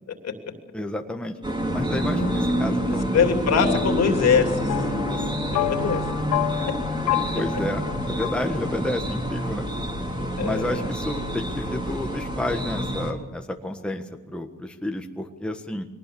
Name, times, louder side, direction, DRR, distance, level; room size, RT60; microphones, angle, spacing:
voice 1, 0.7-1.4 1.7-3.2 4.9-5.2 6.9-9.7 10.4-15.9, left 1 dB, 5° left, 4 dB, 1.5 m, -31 dB
sound 1, 1.4-13.1, right 1 dB, 15° right, 3.6 m, -27 dB
sound 2, 2.2-9.2, left 15 dB, 75° left, 1.0 m, -31 dB
voice 2, 3.1-4.8 5.5-6.0 10.4-10.8, left 6 dB, 55° left, 5 dB, 3.1 m, -22 dB
22.5 x 19.0 x 7.1 m, 1.2 s
cardioid pair, 90°, 30 cm